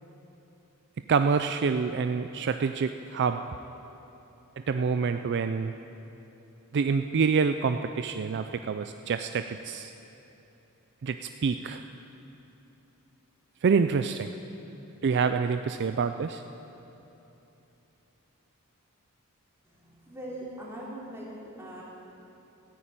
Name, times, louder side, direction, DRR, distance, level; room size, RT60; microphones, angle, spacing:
voice 1, 1.1-3.4 4.7-5.7 6.7-9.9 11.0-11.8 13.6-14.3 15.0-16.4, right 5 dB, 50° right, 8 dB, 0.4 m, -27 dB
voice 2, 19.6-21.8, right 1 dB, 10° right, -6 dB, 3.3 m, -41 dB
14.5 x 9.5 x 8.8 m, 3.0 s
head